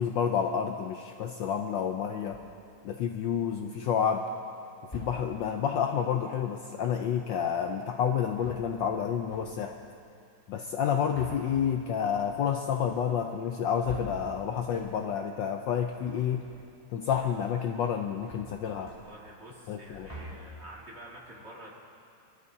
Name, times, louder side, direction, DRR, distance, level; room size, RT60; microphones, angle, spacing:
voice 1, 0.0-2.4 2.8-4.2 4.9-9.8 10.5-16.4 16.9-18.9 19.7-20.1, left 8 dB, 70° left, 4 dB, 1.1 m, -29 dB
sound 1, 2.3-2.8 3.6-4.1 4.8-5.6 8.2-9.0 9.3-9.8 10.7-15.2 15.6-16.8 17.1-17.6 17.8-19.5 19.7-20.9, equal, 15° left, 3.2 m, -47 dB
voice 2, 18.8-21.7, right 1 dB, 30° right, -4 dB, 2.1 m, -48 dB
23.5 x 13.5 x 2.7 m, 2.4 s
omnidirectional pair, 2.4 m